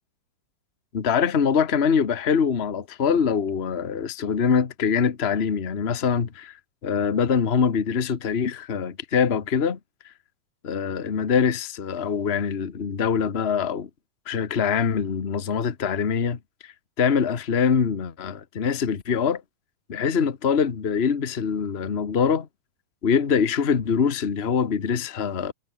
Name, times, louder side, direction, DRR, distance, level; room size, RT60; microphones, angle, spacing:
voice 1, 0.9-6.6 6.8-9.8 10.6-13.9 14.3-19.4 19.9-22.5 23.0-25.5, left 6 dB, 85° left, 0.5 m, -24 dB
omnidirectional pair, 3.5 m